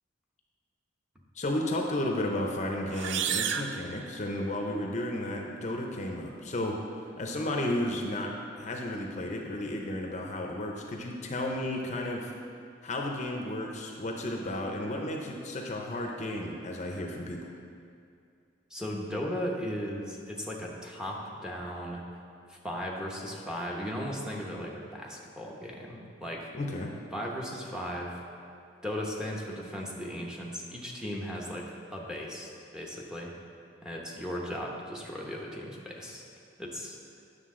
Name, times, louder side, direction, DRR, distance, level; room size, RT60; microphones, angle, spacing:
voice 1, 1.3-6.8 7.2-12.3 12.8-17.5 26.5-26.9, left 1 dB, 40° left, 1 dB, 0.7 m, -33 dB
sound 1, 2.9-4.7, right 8 dB, 75° right, 0.4 m, -33 dB
voice 2, 18.7-22.0 22.5-26.5 27.1-28.2 28.8-33.3 33.8-36.2 36.6-37.0, equal, 5° right, -3 dB, 0.8 m, -37 dB
9.3 x 6.4 x 3.7 m, 2.4 s
head